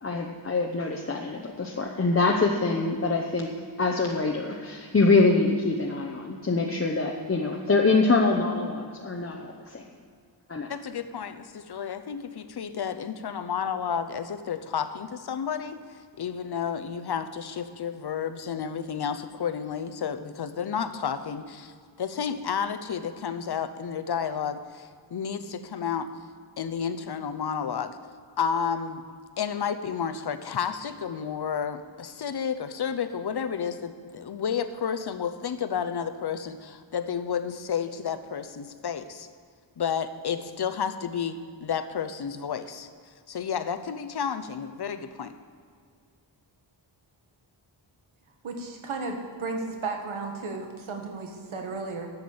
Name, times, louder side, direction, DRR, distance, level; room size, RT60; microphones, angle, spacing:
voice 1, 0.0-3.5 3.8-9.8 10.5-10.7, left 3 dB, 30° left, 0 dB, 0.9 m, -24 dB
voice 2, 10.7-21.7 22.0-26.1 26.6-28.0 28.4-29.0 29.4-39.3 39.8-42.9 43.3-45.4, left 7 dB, 55° left, 10 dB, 0.8 m, -31 dB
voice 3, 48.4-52.1, right 3 dB, 85° right, 3 dB, 1.7 m, -34 dB
11.5 x 8.2 x 7.1 m, 2.1 s
wide cardioid pair, 165°, 47 cm